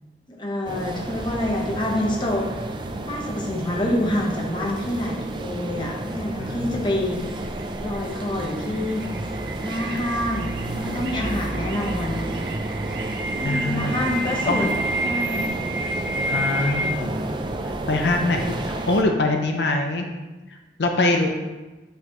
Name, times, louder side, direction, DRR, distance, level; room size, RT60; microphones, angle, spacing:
voice 1, 0.3-2.7 3.1-7.2 7.8-9.1 9.6-12.2 13.3-14.8 15.0-15.5, left 1 dB, 25° left, -1 dB, 1.0 m, -27 dB
sound 1, 0.7-19.0, right 2 dB, 25° right, 0.4 m, -31 dB
voice 2, 6.4-6.7 13.4-13.9 14.5-14.7 16.3-17.1 17.9-20.1 20.5-21.4, left 2 dB, 80° left, 3 dB, 0.7 m, -23 dB
sound 2, 7.1-16.9, right 1 dB, 90° right, 0.8 m, -31 dB
7.8 x 5.7 x 3.1 m, 1.2 s
head